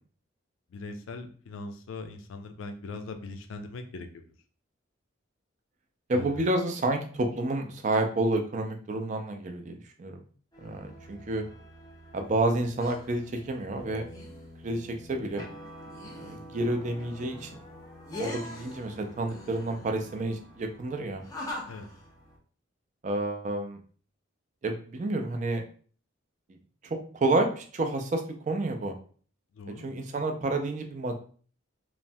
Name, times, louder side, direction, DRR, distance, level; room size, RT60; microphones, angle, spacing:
voice 1, 0.7-4.3 6.1-6.4 21.7-21.9 29.5-29.9, left 3 dB, 75° left, 6 dB, 0.4 m, -40 dB
voice 2, 6.1-10.2 10.6-11.4 12.1-14.0 14.6-15.4 16.2-17.5 18.2-21.2 23.0-23.8 24.6-25.6 26.9-28.9 29.8-31.1, right 2 dB, 35° right, 4 dB, 0.4 m, -29 dB
sound 1, 10.5-22.4, left 1 dB, 15° left, 0.5 m, -44 dB
3.2 x 2.0 x 2.6 m, 0.43 s
head